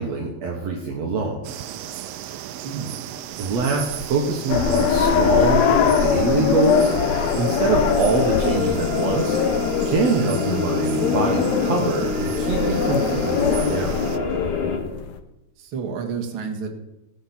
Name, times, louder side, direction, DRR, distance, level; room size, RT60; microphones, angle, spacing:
voice 1, 0.0-1.4 3.4-9.4 9.9-14.1, right 4 dB, 60° right, 1 dB, 2.3 m, -24 dB
sound 1, 1.4-14.2, right 11 dB, 80° right, 1.4 m, -35 dB
voice 2, 2.6-3.1 15.6-16.7, right 6 dB, 45° right, 3 dB, 2.4 m, -30 dB
sound 2, 4.5-15.1, left 7 dB, 70° left, 2.1 m, -22 dB
sound 3, 6.7-14.8, left 3 dB, 50° left, 2.7 m, -28 dB
18.5 x 6.7 x 6.1 m, 0.94 s
omnidirectional pair, 3.6 m